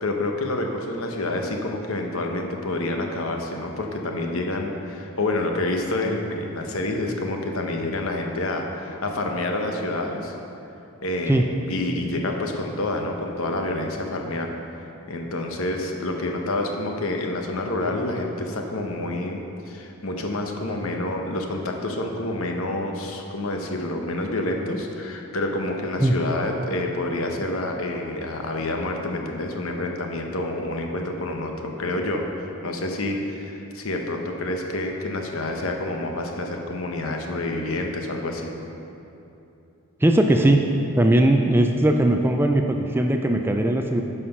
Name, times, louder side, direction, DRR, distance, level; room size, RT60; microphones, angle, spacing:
voice 1, 0.0-10.3 11.0-14.5 15.1-19.4 19.7-32.3 32.6-38.5, left 2 dB, 70° left, 2 dB, 1.0 m, -28 dB
voice 2, 40.0-40.6 41.0-44.0, right 1 dB, 10° right, 4 dB, 0.3 m, -19 dB
9.6 x 5.7 x 5.8 m, 2.8 s
head